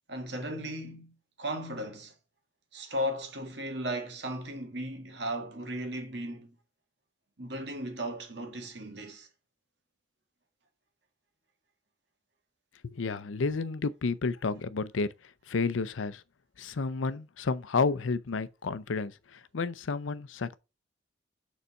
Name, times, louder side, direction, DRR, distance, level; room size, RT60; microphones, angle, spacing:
voice 1, 0.1-2.1 2.7-6.5 7.4-9.3, equal, 65° right, 1.8 m, -36 dB
voice 2, 12.8-15.1 15.5-16.2 16.6-20.6, left 4 dB, 90° left, 0.6 m, -31 dB
6.8 x 4.0 x 4.1 m
head